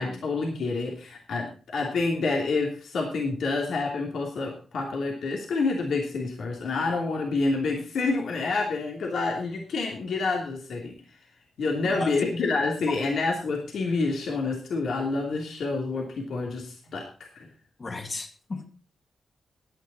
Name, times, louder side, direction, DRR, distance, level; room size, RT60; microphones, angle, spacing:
voice 1, 0.0-10.9 11.6-17.5, left 3 dB, 85° left, 0 dB, 2.9 m, -28 dB
voice 2, 17.8-18.7, left 3 dB, 45° left, 2 dB, 2.5 m, -34 dB
16.0 x 9.9 x 4.3 m, 0.37 s
cardioid pair, 75°, 0 cm